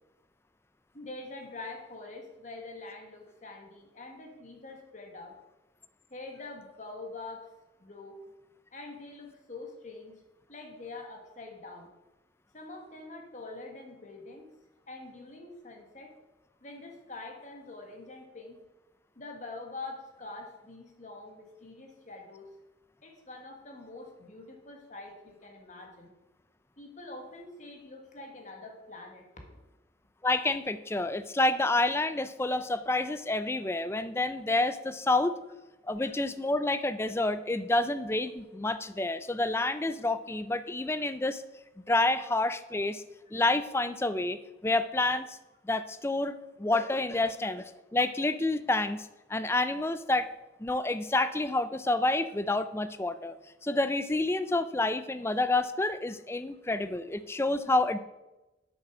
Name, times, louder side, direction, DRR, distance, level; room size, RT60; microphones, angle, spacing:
voice 1, 0.9-5.4 6.1-7.5 7.8-8.2 8.7-10.1 10.5-11.9 12.5-14.5 14.9-16.1 16.6-18.6 19.1-22.5 23.0-26.1 26.8-29.6 36.0-36.1, left 2 dB, 40° left, 2 dB, 1.6 m, -45 dB
voice 2, 30.2-35.4 35.9-41.4 41.9-43.0 43.3-44.4 44.6-45.4 45.7-46.3 46.6-50.3 50.6-53.3 53.6-58.0, left 2 dB, 15° left, 12 dB, 0.4 m, -28 dB
8.2 x 6.9 x 6.1 m, 1.0 s
head